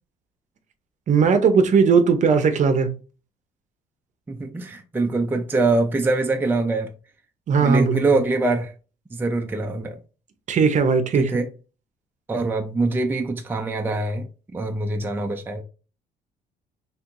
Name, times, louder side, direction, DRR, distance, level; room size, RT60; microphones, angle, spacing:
voice 1, 1.1-2.9 7.5-8.0 10.5-11.3, right 5 dB, 45° right, 0.7 m, -18 dB
voice 2, 4.3-6.9 7.6-8.7 9.1-10.0 11.1-11.5 12.3-14.3 14.5-15.6, right 3 dB, 10° right, 0.5 m, -23 dB
4.4 x 3.4 x 2.5 m
cardioid pair, 110°, 17 cm